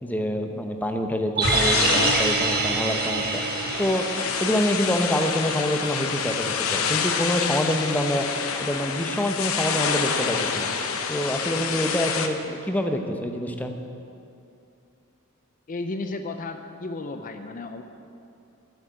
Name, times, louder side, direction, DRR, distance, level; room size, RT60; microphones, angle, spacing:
voice 1, 0.0-3.4 3.8-4.1 4.4-8.3 8.6-10.7 11.1-13.7, left 1 dB, 10° left, 5 dB, 0.8 m, -26 dB
sound 1, 1.4-12.3, left 6 dB, 80° left, 0.9 m, -28 dB
sound 2, 1.4-5.6 5.9-6.0, right 4 dB, 50° right, 1.1 m, -26 dB
voice 2, 15.7-17.8, left 2 dB, 40° left, 7 dB, 0.5 m, -33 dB
8.6 x 8.2 x 9.2 m, 2.6 s
head